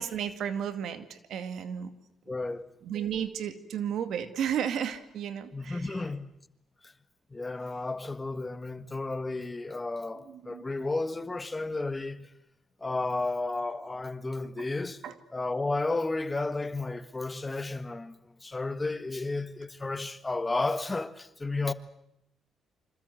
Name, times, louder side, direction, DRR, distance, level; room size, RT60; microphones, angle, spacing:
voice 1, 0.0-1.9 2.8-6.0 10.3-10.6 14.6-14.7 15.0-15.2, right 8 dB, 75° right, 2.3 m, -33 dB
voice 2, 2.3-2.7 5.5-6.3 7.3-12.3 12.8-15.0 15.3-18.1 18.4-21.7, left 3 dB, 20° left, 1.6 m, -32 dB
27.5 x 25.5 x 7.9 m
cardioid pair, 90°, 0 cm